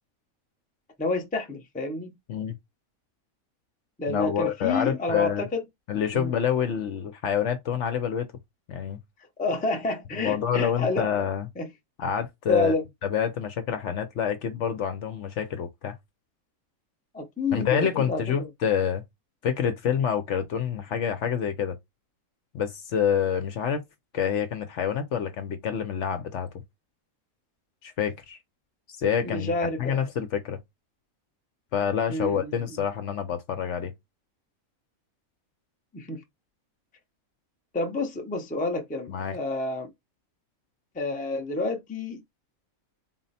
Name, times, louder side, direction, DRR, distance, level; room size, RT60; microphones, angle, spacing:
voice 1, 1.0-2.1 4.0-5.6 6.1-6.3 9.4-11.2 11.6-11.7 12.5-12.8 17.1-18.5 29.2-30.0 32.1-32.5 35.9-36.2 37.7-39.9 40.9-42.2, left 2 dB, 10° left, 0.5 m, -29 dB
voice 2, 4.1-5.5 5.9-8.3 8.7-9.0 10.2-11.5 12.0-12.7 13.0-15.9 17.5-19.0 19.4-21.8 22.5-23.8 24.1-26.5 27.8-28.4 28.9-30.6 31.7-33.9 39.1-39.4, left 8 dB, 65° left, 0.8 m, -27 dB
4.0 x 2.1 x 4.1 m
omnidirectional pair, 1.5 m